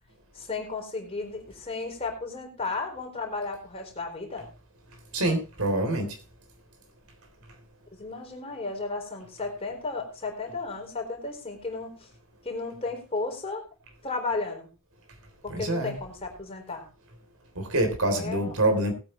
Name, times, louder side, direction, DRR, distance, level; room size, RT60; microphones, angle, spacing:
voice 1, 0.3-4.5 8.0-12.1 12.4-13.6 14.0-14.7 15.4-16.9 18.1-18.5, left 3 dB, 30° left, 4.0 m, -34 dB
voice 2, 5.1-6.2 15.5-16.0 17.6-18.9, right 1 dB, 90° right, 3.6 m, -26 dB
19.5 x 8.8 x 3.2 m
head